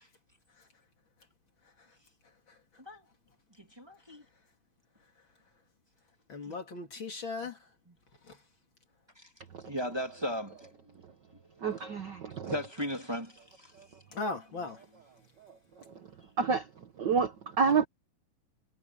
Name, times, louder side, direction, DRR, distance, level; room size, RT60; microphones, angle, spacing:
voice 1, 3.6-4.2 6.5-6.6 7.9-8.0 9.2-9.3 9.7-10.7 11.3-11.4 12.3-13.7, equal, 10° right, 2.4 m, -37 dB
voice 2, 6.3-7.6 8.3-8.4 14.1-14.8, left 3 dB, 40° left, 2.9 m, -37 dB
voice 3, 11.6-12.6 13.7-13.9 15.4-16.1 16.4-17.9, right 5 dB, 70° right, 1.0 m, -30 dB
omnidirectional pair, 3.7 m